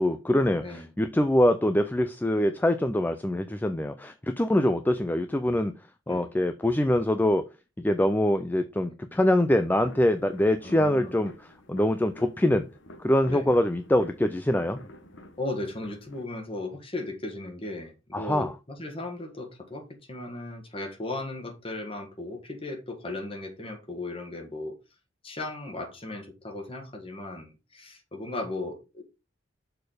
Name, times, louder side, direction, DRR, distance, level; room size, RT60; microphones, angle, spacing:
voice 1, 0.0-5.7 6.1-7.5 7.8-12.7 13.0-14.8 18.1-18.5, left 1 dB, 10° left, 0.4 m, -24 dB
sound 1, 9.2-16.2, left 1 dB, 75° left, 1.0 m, -49 dB
voice 2, 10.6-11.2 13.3-13.5 15.4-24.8 25.2-29.0, left 2 dB, 30° left, 1.6 m, -36 dB
6.7 x 4.3 x 4.9 m
head